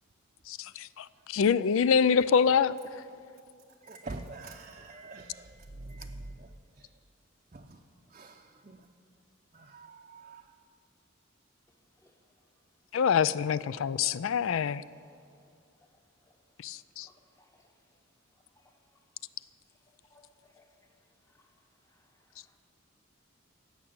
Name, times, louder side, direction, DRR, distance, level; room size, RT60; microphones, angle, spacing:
voice 1, 0.5-2.8 12.9-14.8 16.6-17.1, left 6 dB, 75° left, 18 dB, 0.4 m, -26 dB
voice 2, 3.8-6.5 7.5-7.8 8.1-8.8 9.5-10.4, right 2 dB, 35° right, 1 dB, 0.6 m, -45 dB
voice 3, 17.0-17.7 18.6-18.8 20.1-20.7 21.3-21.5 21.9-22.6, left 2 dB, 15° left, 3 dB, 1.2 m, -65 dB
16.5 x 6.1 x 8.6 m, 2.3 s
head